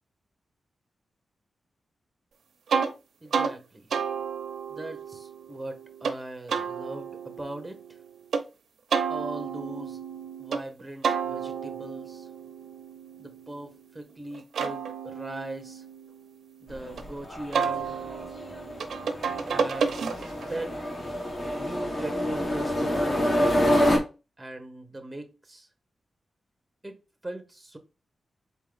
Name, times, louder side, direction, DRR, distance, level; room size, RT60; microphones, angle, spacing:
sound 1, 2.7-2.9 3.3-3.5 3.9-6.2 6.5-8.4 8.9-10.6 11.0-13.9 14.3-17.0 17.5-20.5, right 6 dB, 90° right, 0.7 m, -31 dB
voice 1, 3.2-3.9 4.7-7.8 9.1-10.0 10.4-12.3 13.2-15.8 16.6-18.0 19.5-20.1 20.4-20.8 21.5-24.0 24.4-25.7 26.8-27.0 27.2-27.8, right 1 dB, 10° right, 0.8 m, -39 dB
sound 2, 16.7-24.0, equal, 35° left, 1.3 m, -27 dB
4.1 x 3.6 x 3.5 m
wide cardioid pair, 135°, 0 cm